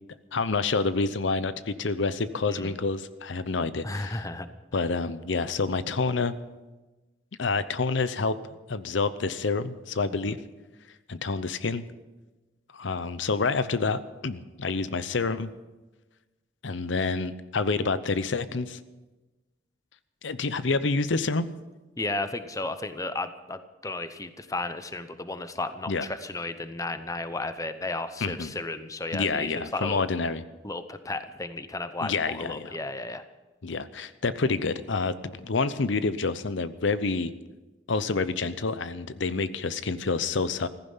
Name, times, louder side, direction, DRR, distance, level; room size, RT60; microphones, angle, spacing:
voice 1, 0.3-4.3 4.7-6.3 7.4-8.4 8.7-10.4 11.1-11.8 12.7-15.5 16.6-18.8 20.2-21.5 25.9-26.1 28.2-28.5 29.1-30.4 32.0-32.8 33.6-37.3 37.9-40.7, left 4 dB, 70° left, 14 dB, 0.7 m, -28 dB
voice 2, 2.5-2.8 3.8-4.5 10.1-10.4 22.0-30.0 30.6-33.2, left 2 dB, 15° left, 11 dB, 0.8 m, -34 dB
15.5 x 14.5 x 5.6 m, 1.1 s
head